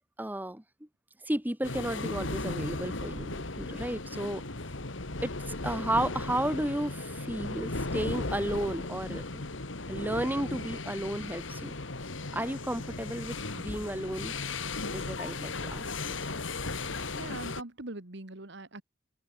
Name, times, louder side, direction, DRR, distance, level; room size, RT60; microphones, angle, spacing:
voice 1, 0.2-0.6 1.2-4.4 5.2-9.5 9.9-11.7 12.3-14.3 14.9-16.2, right 1 dB, 10° right, 1.6 m, -33 dB
sound 1, 1.6-17.6, left 2 dB, 70° left, 2.3 m, -36 dB
voice 2, 17.1-18.8, right 2 dB, 60° right, 2.0 m, -42 dB
open air
head